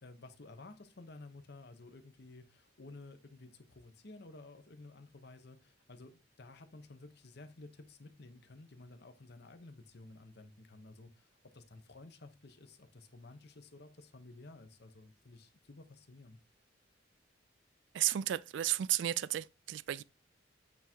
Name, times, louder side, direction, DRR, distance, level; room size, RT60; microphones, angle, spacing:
voice 1, 0.0-16.4, left 2 dB, 60° left, 1.0 m, -54 dB
voice 2, 17.9-20.0, right 13 dB, 70° right, 0.3 m, -33 dB
8.5 x 3.6 x 4.5 m
head